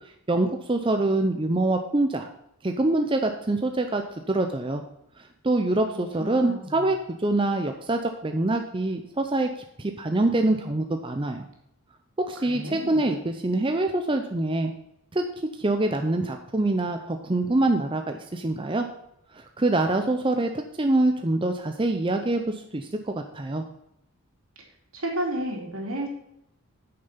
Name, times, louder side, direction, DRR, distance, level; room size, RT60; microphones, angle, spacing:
voice 1, 0.3-2.3 2.6-4.8 5.4-9.5 9.8-11.5 12.3-14.7 15.1-15.2 15.6-18.9 19.3-23.6, right 2 dB, 25° right, 5 dB, 0.6 m, -25 dB
voice 2, 6.2-6.8 12.5-13.0 24.9-26.1, right 1 dB, 75° right, 0 dB, 2.8 m, -31 dB
9.1 x 6.7 x 5.8 m, 0.78 s
head